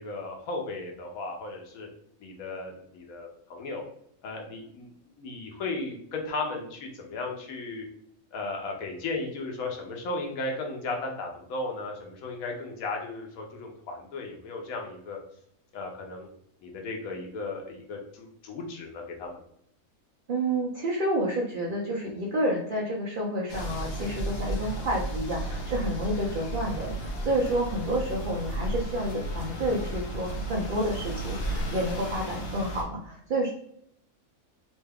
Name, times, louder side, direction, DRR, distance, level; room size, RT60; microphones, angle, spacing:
voice 1, 0.0-1.9 2.2-3.8 4.2-4.9 5.2-7.8 8.3-15.2 15.7-16.3 16.6-19.4, left 3 dB, 90° left, 1 dB, 1.2 m, -35 dB
voice 2, 20.3-33.5, right 1 dB, 60° right, -3 dB, 0.5 m, -29 dB
sound 1, 23.5-32.8, right 1 dB, 55° left, 0.9 m, -34 dB
3.1 x 2.2 x 3.3 m, 0.68 s
omnidirectional pair, 1.4 m